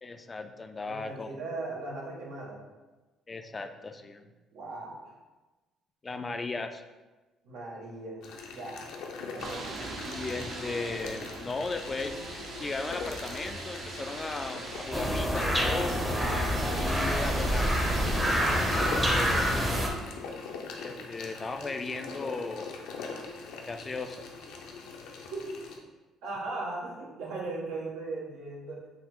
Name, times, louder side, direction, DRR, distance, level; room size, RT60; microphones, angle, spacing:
voice 1, 0.0-1.4 3.3-4.3 6.0-6.8 9.9-12.2 12.6-16.0 16.8-17.8 18.4-19.6 20.8-22.8 23.7-24.2, left 3 dB, 25° left, 7 dB, 0.3 m, -36 dB
voice 2, 0.9-2.6 4.5-5.1 7.4-8.2 8.5-8.8 9.3-9.7 25.3-25.4 26.2-28.8, right 3 dB, 85° right, -4 dB, 1.1 m, -38 dB
sound 1, 8.2-25.8, left 4 dB, 80° left, 0.6 m, -42 dB
sound 2, 9.4-19.9, right 2 dB, 55° right, 0.7 m, -40 dB
sound 3, 14.9-19.9, equal, 5° right, 0.6 m, -27 dB
5.5 x 2.0 x 3.6 m, 1.2 s
cardioid pair, 105°, 0 cm